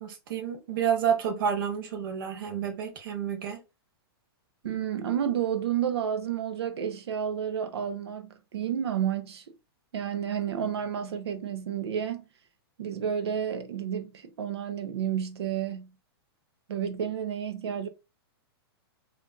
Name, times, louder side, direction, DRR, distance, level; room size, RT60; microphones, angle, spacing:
voice 1, 0.0-3.6, right 8 dB, 55° right, 0.9 m, -29 dB
voice 2, 4.6-9.4 9.9-12.2 12.8-15.9 16.7-17.9, right 9 dB, 85° right, 0.7 m, -31 dB
3.8 x 2.5 x 2.3 m
hypercardioid pair, 165°, 13 cm